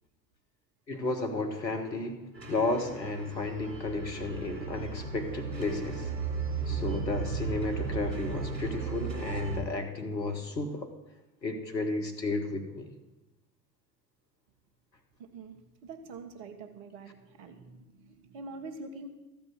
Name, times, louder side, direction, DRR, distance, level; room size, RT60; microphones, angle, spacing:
voice 1, 0.9-6.1 6.7-10.9 11.4-12.9, left 2 dB, 90° left, 5 dB, 1.3 m, -33 dB
sound 1, 2.3-9.6, right 5 dB, 85° right, 2.0 m, -35 dB
voice 2, 15.2-19.1, right 3 dB, 55° right, 6 dB, 1.6 m, -45 dB
13.5 x 5.3 x 8.0 m, 1.0 s
figure-of-eight pair, 65°, 49 cm